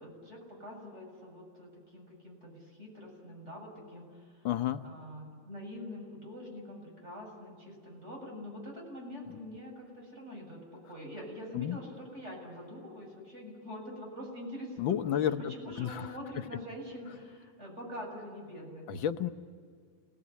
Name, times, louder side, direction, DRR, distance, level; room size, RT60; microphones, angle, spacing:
voice 1, 0.0-4.5 4.8-18.9, left 1 dB, 35° right, -1 dB, 7.8 m, -45 dB
voice 2, 4.4-4.8 11.5-11.8 14.8-15.4 15.8-16.1 18.9-19.3, left 10 dB, 80° left, 8 dB, 1.7 m, -30 dB
29.0 x 19.0 x 9.6 m, 2.1 s
omnidirectional pair, 2.1 m